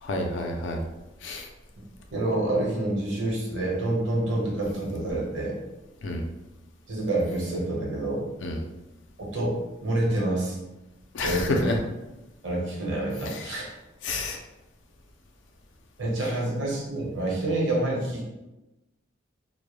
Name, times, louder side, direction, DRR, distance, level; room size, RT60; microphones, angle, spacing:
voice 1, 0.0-0.8 1.2-1.5 6.0-6.2 8.4-8.6 11.1-11.8 13.3-13.5 14.0-14.4, left 2 dB, 80° left, 3 dB, 0.4 m, -29 dB
voice 2, 2.1-5.6 6.9-8.3 9.2-9.5 9.8-10.6 11.2-11.7 12.4-13.7 16.0-18.2, right 1 dB, 70° right, -3 dB, 0.8 m, -27 dB
2.1 x 2.1 x 3.0 m, 1.0 s
head